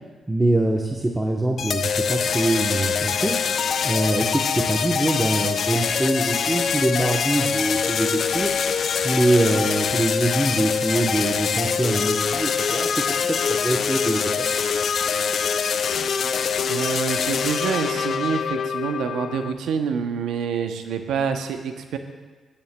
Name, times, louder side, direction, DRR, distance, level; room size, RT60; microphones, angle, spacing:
voice 1, 0.3-3.3 3.8-8.5 9.0-14.5, right 1 dB, 15° right, 0 dB, 0.9 m, -24 dB
sound 1, 1.6-19.5, left 6 dB, 65° left, 0.4 m, -24 dB
voice 2, 16.7-22.0, right 6 dB, 80° right, 6 dB, 0.7 m, -27 dB
19.5 x 8.8 x 2.2 m, 1.3 s
supercardioid pair, 60°, 0 cm